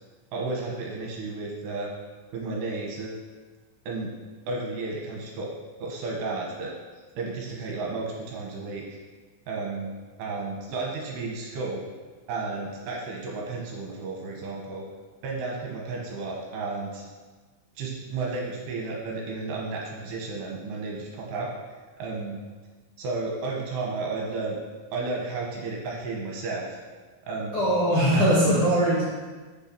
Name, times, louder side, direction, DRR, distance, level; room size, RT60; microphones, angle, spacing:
voice 1, 0.3-1.9 2.3-3.2 3.9-4.1 4.5-5.5 5.8-6.7 7.2-8.8 9.5-11.8 12.3-14.8 15.2-17.0 17.8-21.5 22.0-22.4 23.0-24.6 24.9-26.8 27.2-27.6 28.1-28.6, right 3 dB, 70° right, -2 dB, 3.1 m, -32 dB
voice 2, 27.5-29.0, equal, 45° left, -10 dB, 2.0 m, -21 dB
8.3 x 6.6 x 6.1 m, 1.3 s
omnidirectional pair, 5.5 m